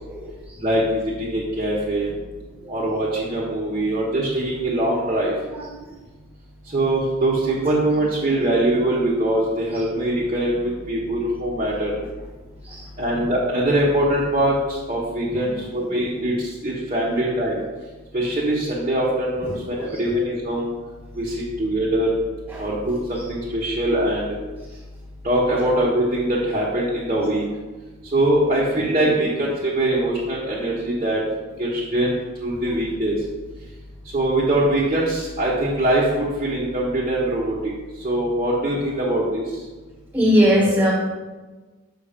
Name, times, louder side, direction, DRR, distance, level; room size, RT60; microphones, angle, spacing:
voice 1, 0.1-0.6 2.0-2.1 2.5-2.7 5.5-5.7 9.7-9.8 12.6-13.2 15.3-15.9 19.4-20.0 22.5-22.7 23.1-23.2 28.8-28.9 29.2-29.3 30.6-30.7 32.6-32.7 40.1-40.9, equal, 10° right, -4 dB, 1.6 m, -23 dB
voice 2, 1.2-2.1 2.7-5.3 6.7-11.9 13.0-16.3 16.6-17.6 18.1-20.7 21.2-22.1 22.6-24.3 25.2-27.4 28.1-31.2 31.6-33.1 34.1-37.5 38.0-39.4, right 1 dB, 30° right, -6 dB, 1.1 m, -22 dB
6.3 x 5.7 x 5.1 m, 1.3 s
head